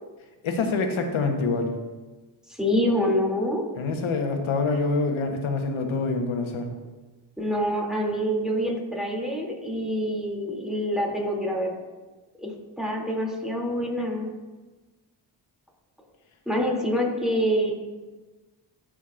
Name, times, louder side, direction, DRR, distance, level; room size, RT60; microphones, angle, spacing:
voice 1, 0.4-1.7 3.7-6.7, left 3 dB, 75° left, 4 dB, 1.2 m, -26 dB
voice 2, 2.5-3.6 7.4-11.7 12.4-12.5 12.8-14.3 16.5-17.7, equal, ahead, -2 dB, 2.5 m, -26 dB
13.5 x 5.2 x 2.5 m, 1.2 s
supercardioid pair, 50°, 49 cm